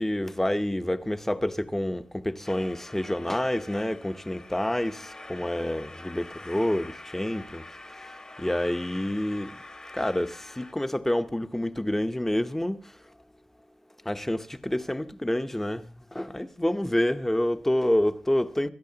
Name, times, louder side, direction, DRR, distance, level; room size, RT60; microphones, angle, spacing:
voice 1, 0.0-7.6 7.9-8.1 8.4-9.6 9.9-12.9 14.0-18.7, left 1 dB, 10° left, 0.8 m, -28 dB
sound 1, 2.4-10.7, left 2 dB, 25° left, 1.1 m, -45 dB
27.0 x 14.0 x 2.8 m
wide cardioid pair, 140°, 3 cm